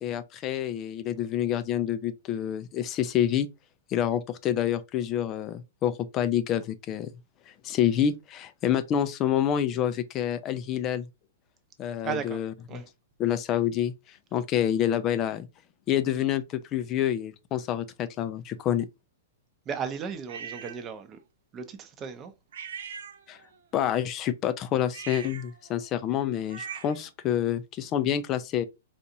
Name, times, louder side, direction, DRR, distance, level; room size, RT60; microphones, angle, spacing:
voice 1, 0.0-3.5 3.9-7.1 7.5-11.1 11.8-12.5 13.2-15.5 15.9-18.9 23.3-23.4 23.7-28.6, left 10 dB, 30° left, 0.4 m, -27 dB
voice 2, 12.0-12.4 12.7-12.9 19.7-21.2 21.5-22.3, right 6 dB, 25° right, 0.6 m, -35 dB
sound 1, 20.3-20.8 22.5-23.6 24.9-27.1, right 7 dB, 75° right, 0.5 m, -41 dB
4.0 x 2.4 x 2.7 m
hypercardioid pair, 145°, 0 cm